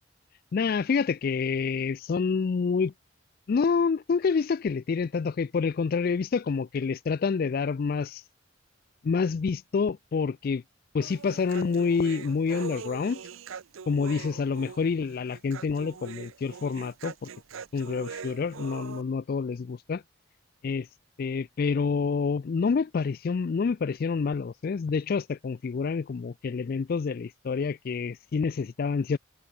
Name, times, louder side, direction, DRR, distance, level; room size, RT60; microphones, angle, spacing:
voice 1, 0.5-2.9 3.5-8.2 9.0-10.6 10.9-13.2 13.9-17.3 17.7-20.0 20.6-20.9 21.2-29.2, left 5 dB, 45° left, 0.3 m, -27 dB
Human voice, 11.0-19.0, right 6 dB, 75° right, 0.6 m, -42 dB
head